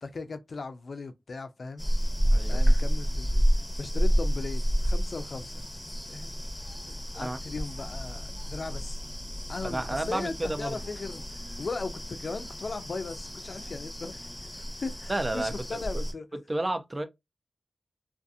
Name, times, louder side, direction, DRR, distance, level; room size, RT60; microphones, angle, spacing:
voice 1, 0.0-1.9 2.4-3.5 3.8-5.7 6.1-6.3 7.1-9.0 9.5-16.4, left 3 dB, 70° left, 0.4 m, -38 dB
sound 1, 1.8-16.1, equal, 10° left, 0.8 m, -30 dB
voice 2, 2.1-2.6 7.1-7.4 9.6-10.8 15.1-15.8 16.5-17.0, right 1 dB, 30° right, 0.4 m, -31 dB
sound 2, 6.2-11.7, equal, 65° right, 0.8 m, -43 dB
2.6 x 2.5 x 2.3 m
wide cardioid pair, 75°, 0 cm